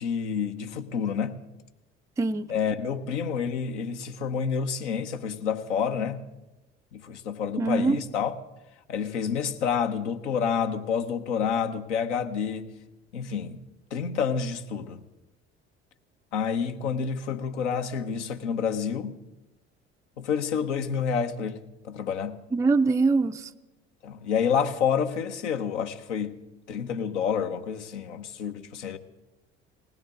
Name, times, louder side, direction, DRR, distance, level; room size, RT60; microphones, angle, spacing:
voice 1, 0.0-1.4 2.5-6.2 6.9-8.4 8.9-12.7 13.1-13.6 13.9-15.0 16.3-19.2 20.2-22.4 24.0-26.4 26.7-29.0, left 7 dB, 70° left, 1.1 m, -29 dB
voice 2, 7.6-8.0 22.5-23.4, right 3 dB, 10° right, 0.4 m, -23 dB
20.0 x 16.0 x 3.9 m
figure-of-eight pair, 60°, 37 cm